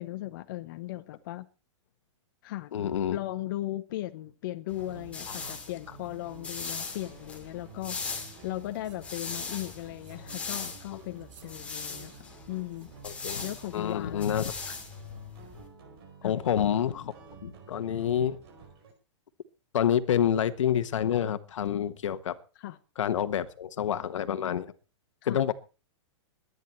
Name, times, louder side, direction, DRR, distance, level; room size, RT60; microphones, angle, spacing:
voice 1, 0.0-1.5 2.4-8.0 8.4-14.5 16.2-16.3 22.6-22.8 25.3-25.4, left 15 dB, 40° left, 0.8 m, -37 dB
voice 2, 2.7-3.2 5.4-5.5 10.9-11.0 13.0-13.4 13.7-14.8 16.2-17.1 17.4-18.4 19.7-22.4 23.0-24.7 25.2-25.5, left 9 dB, 75° left, 1.4 m, -28 dB
sound 1, 4.7-15.7, left 4 dB, 10° left, 2.6 m, -40 dB
sound 2, 4.8-18.9, right 6 dB, 50° right, 4.9 m, -51 dB
sound 3, 8.8-9.0 9.4-9.7 10.0-10.3 10.6-10.8 11.2-11.5 12.0-12.3 12.7-13.0 14.1-14.5, right 7 dB, 80° right, 4.4 m, -59 dB
22.5 x 9.7 x 4.4 m
hypercardioid pair, 165°, 16 cm